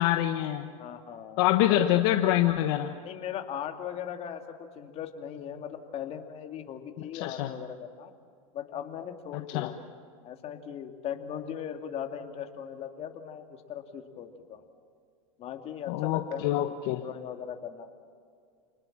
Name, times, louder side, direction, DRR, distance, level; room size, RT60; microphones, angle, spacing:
voice 1, 0.0-0.7 1.4-2.9 7.0-7.5 9.3-9.7 15.9-17.0, left 13 dB, 55° left, 7 dB, 1.3 m, -26 dB
voice 2, 0.8-1.4 3.0-8.1 8.5-9.8 10.2-14.7 15.4-16.7 17.0-17.9, left 9 dB, 35° left, 5 dB, 2.5 m, -39 dB
28.5 x 20.0 x 7.5 m, 2.2 s
hypercardioid pair, 125°, 18 cm